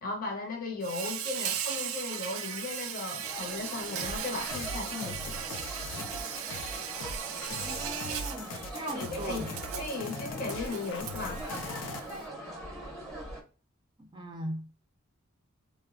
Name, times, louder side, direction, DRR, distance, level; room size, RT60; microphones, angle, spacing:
voice 1, 0.0-5.4 8.8-9.4 9.8-11.7, left 3 dB, 40° left, 0.7 m, -36 dB
Insect, 0.8-12.2, right 9 dB, 85° right, 0.4 m, -38 dB
sound 1, 3.2-13.4, right 1 dB, ahead, 0.8 m, -42 dB
sound 2, 4.0-12.0, left 4 dB, 60° left, 0.3 m, -41 dB
voice 2, 7.5-9.5 14.1-14.8, right 1 dB, 20° right, 0.5 m, -39 dB
3.3 x 2.0 x 2.4 m
head